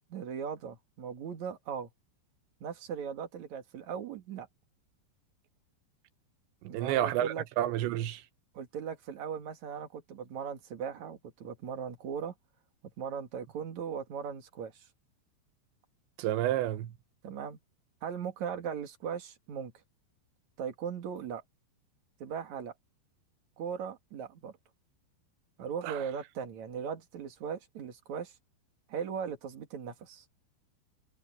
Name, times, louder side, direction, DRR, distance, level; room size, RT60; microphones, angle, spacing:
voice 1, 0.1-1.9 2.6-4.5 6.7-7.4 8.5-12.3 13.0-14.9 17.2-17.6 18.0-19.7 20.6-21.4 22.2-22.7 23.6-24.5 25.6-28.3 28.9-30.2, right 7 dB, 50° right, 2.8 m, -38 dB
voice 2, 6.7-8.2 16.2-16.9 25.8-26.0, right 13 dB, 80° right, 3.2 m, -30 dB
omnidirectional pair, 5.3 m